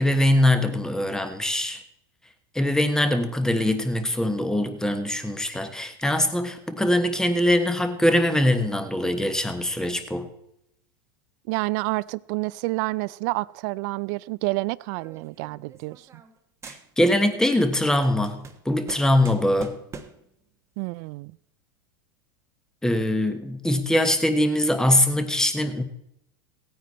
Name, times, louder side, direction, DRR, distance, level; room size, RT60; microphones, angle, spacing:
voice 1, 0.0-1.8 2.5-10.3 16.6-19.8 22.8-25.8, left 1 dB, 5° left, 1.3 m, -22 dB
voice 2, 11.5-16.1 20.8-21.3, right 23 dB, 55° right, 0.4 m, -29 dB
sound 1, 15.0-16.4 16.6-17.3 17.6-20.3, right 5 dB, 25° right, 1.1 m, -44 dB
16.5 x 9.5 x 4.2 m
hypercardioid pair, 115°, 12 cm